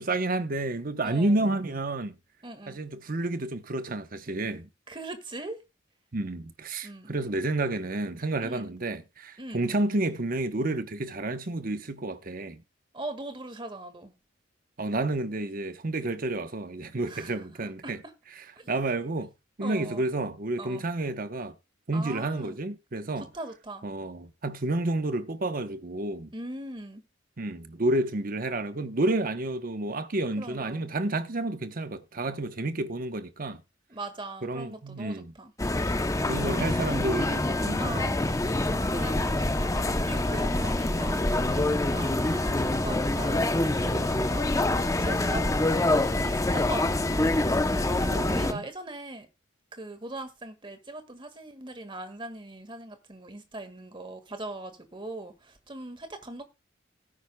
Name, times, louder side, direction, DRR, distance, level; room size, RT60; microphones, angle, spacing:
voice 1, 0.0-2.1 2.7-4.7 6.1-12.6 14.8-18.0 18.4-19.3 19.6-21.6 21.9-23.3 23.8-26.3 27.4-33.6 34.4-35.3 36.2-37.9 39.9-40.1 48.0-48.6, right 2 dB, 50° right, 0.9 m, -30 dB
voice 2, 1.0-1.5 2.4-2.8 4.9-5.6 6.8-7.1 8.4-8.7 9.4-9.7 12.9-14.1 17.0-18.1 18.6-18.7 19.6-20.0 20.6-20.9 21.9-22.6 23.2-23.9 26.3-27.0 30.4-30.9 33.9-35.9 36.6-37.1 37.8-38.4 38.9-44.6 45.0-47.5 48.0-49.3 49.7-56.4, right 2 dB, 25° right, 1.8 m, -40 dB
sound 1, 35.6-48.5, left 2 dB, 15° left, 0.7 m, -26 dB
18.0 x 9.8 x 2.3 m
head